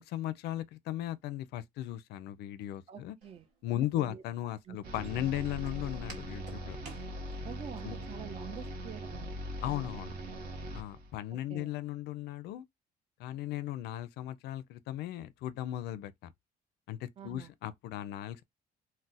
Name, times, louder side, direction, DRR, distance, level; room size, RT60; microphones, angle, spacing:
voice 1, 0.0-3.2 3.6-6.8 7.8-8.0 9.6-10.1 10.7-12.7 13.2-16.3 16.9-18.4, left 13 dB, 80° left, 0.4 m, -37 dB
voice 2, 2.9-3.5 3.9-4.2 4.6-5.2 7.4-9.4 11.3-11.7 17.2-17.5, right 8 dB, 35° right, 0.5 m, -47 dB
Walk footsteps, 3.2-7.8, right 3 dB, 85° right, 1.2 m, -54 dB
sound 1, 4.8-11.1, equal, 65° right, 0.8 m, -41 dB
2.4 x 2.1 x 3.9 m
cardioid pair, 110°, 17 cm